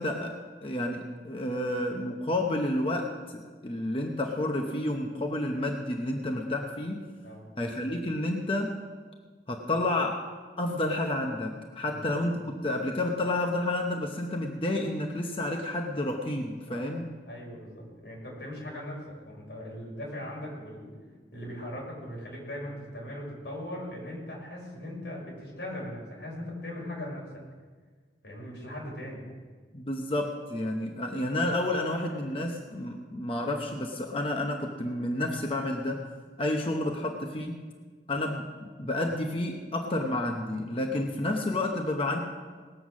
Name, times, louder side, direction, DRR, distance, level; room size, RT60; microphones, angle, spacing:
voice 1, 0.0-7.1 7.6-8.8 9.5-10.3 10.6-17.1 29.7-36.0 36.4-37.6 38.1-42.2, left 1 dB, 30° left, 2 dB, 0.9 m, -30 dB
voice 2, 11.8-12.1 16.7-17.0 17.3-19.0 19.2-20.9 21.3-27.2 28.2-29.2, left 1 dB, 90° left, -3 dB, 5.1 m, -39 dB
18.5 x 7.9 x 6.2 m, 1.5 s
head